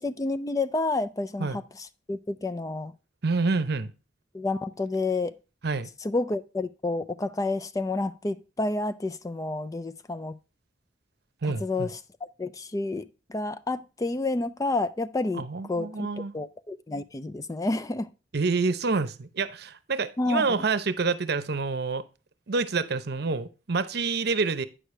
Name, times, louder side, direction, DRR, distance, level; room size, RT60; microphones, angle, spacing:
voice 1, 0.0-2.9 4.3-5.4 6.0-10.4 11.4-12.0 12.4-16.1 16.3-18.1 20.2-20.6, left 2 dB, 20° left, 0.4 m, -30 dB
voice 2, 3.2-3.9 5.6-5.9 11.4-11.9 15.3-16.3 18.3-22.1 22.5-24.7, right 4 dB, 60° right, 0.8 m, -27 dB
9.0 x 6.5 x 3.2 m
head